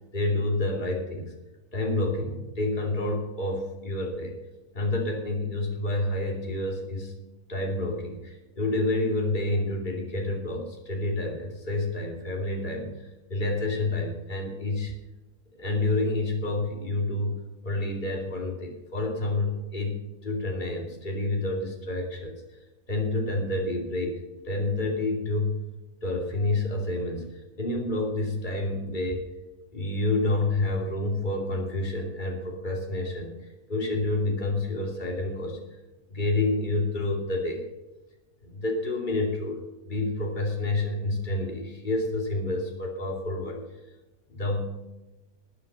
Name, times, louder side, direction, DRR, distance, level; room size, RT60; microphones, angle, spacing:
voice 1, 0.1-1.3 1.7-4.4 4.7-7.1 7.5-12.9 13.3-14.9 15.5-22.4 22.9-25.6 26.0-29.2 29.7-33.3 33.7-35.6 36.1-37.7 38.4-43.6 44.3-44.8, left 2 dB, 30° left, 1 dB, 2.8 m, -29 dB
14.0 x 9.9 x 5.5 m, 1.0 s
omnidirectional pair, 1.7 m